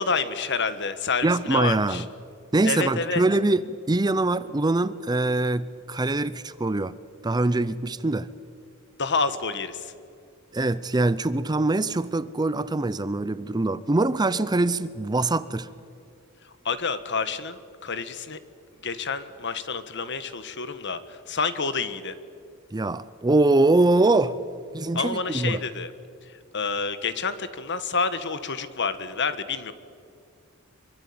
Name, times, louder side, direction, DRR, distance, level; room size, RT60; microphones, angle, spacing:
voice 1, 0.0-2.0 2.6-3.2 9.0-9.9 16.4-18.4 18.8-22.2 24.9-25.9 26.2-29.7, left 4 dB, 55° left, 12 dB, 1.5 m, -28 dB
voice 2, 1.2-2.0 2.5-6.9 7.2-8.3 10.5-15.7 22.7-24.4 24.7-25.6, right 2 dB, 20° right, 16 dB, 0.6 m, -23 dB
24.5 x 23.5 x 8.7 m, 2.3 s
head